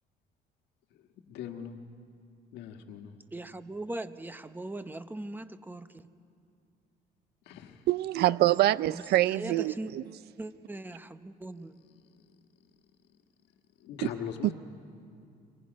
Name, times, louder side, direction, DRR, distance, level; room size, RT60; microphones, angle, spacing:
voice 1, 0.9-1.8 2.5-3.2 7.4-7.9 11.8-12.4 13.8-14.5, left 8 dB, 85° left, 6 dB, 1.6 m, -42 dB
voice 2, 3.3-6.1 8.9-9.9 10.4-11.7, right 2 dB, 10° right, 11 dB, 0.9 m, -40 dB
voice 3, 7.9-10.0, right 15 dB, 70° right, 18 dB, 0.5 m, -25 dB
29.5 x 23.0 x 5.3 m, 2.4 s
cardioid pair, 110°, 17 cm